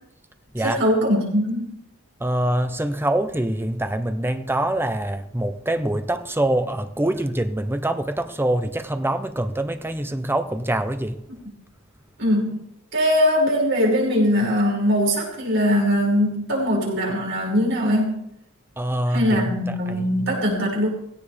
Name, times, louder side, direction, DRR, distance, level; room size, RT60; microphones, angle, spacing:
voice 1, 0.6-1.8 12.2-12.6 12.9-18.2 19.1-20.9, equal, 60° right, 6.1 m, -21 dB
voice 2, 2.2-11.2 18.8-20.3, right 1 dB, 10° right, 0.9 m, -25 dB
17.0 x 16.5 x 3.5 m
head